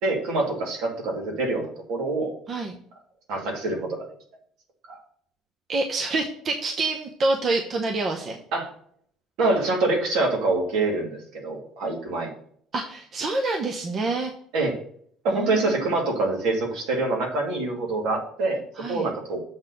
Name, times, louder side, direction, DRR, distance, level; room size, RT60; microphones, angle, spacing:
voice 1, 0.0-2.3 3.3-4.0 4.9-5.0 8.5-8.7 9.4-12.3 14.5-14.7 15.2-18.6 18.9-19.4, right 2 dB, 70° right, 0 dB, 2.4 m, -25 dB
voice 2, 5.7-8.4 12.7-14.3 15.3-15.9 18.8-19.1, right 3 dB, 35° right, 3 dB, 0.8 m, -27 dB
7.1 x 4.1 x 6.6 m, 0.62 s
cardioid pair, 140°, 0 cm